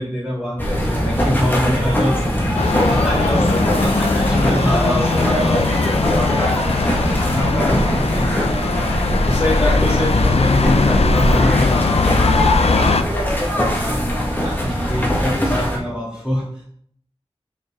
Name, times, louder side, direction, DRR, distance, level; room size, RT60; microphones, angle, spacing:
voice 1, 0.0-2.2 2.9-3.5 3.8-5.6 6.0-8.9 9.2-12.1 12.7-13.1 13.4-16.6, equal, 5° right, -10 dB, 2.7 m, -25 dB
sound 1, 0.6-15.8, equal, 20° left, 1.6 m, -20 dB
sound 2, 2.6-13.0, left 4 dB, 70° left, 0.4 m, -20 dB
6.1 x 4.9 x 3.7 m, 0.65 s
wide cardioid pair, 65°, 11 cm